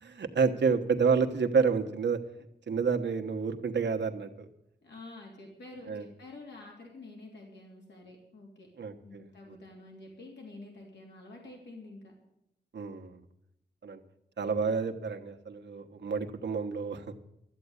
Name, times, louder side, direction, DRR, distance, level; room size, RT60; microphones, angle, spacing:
voice 1, 0.0-2.2 2.7-4.5 5.9-6.0 8.8-9.2 12.7-13.2 13.8-14.0 14.4-17.0, right 5 dB, 80° right, 5 dB, 1.3 m, -29 dB
voice 2, 4.8-8.7 9.0-12.1, left 2 dB, 75° left, -1 dB, 3.0 m, -48 dB
13.0 x 8.4 x 9.7 m, 0.81 s
wide cardioid pair, 125°, 18 cm